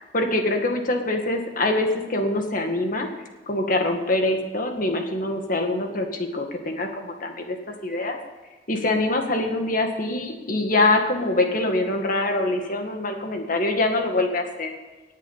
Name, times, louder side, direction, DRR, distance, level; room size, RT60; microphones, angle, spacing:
voice 1, 0.1-3.1 3.5-7.6 7.8-8.2 8.7-14.7, left 2 dB, 50° left, 4 dB, 1.9 m, -24 dB
19.0 x 7.6 x 5.6 m, 1.2 s
head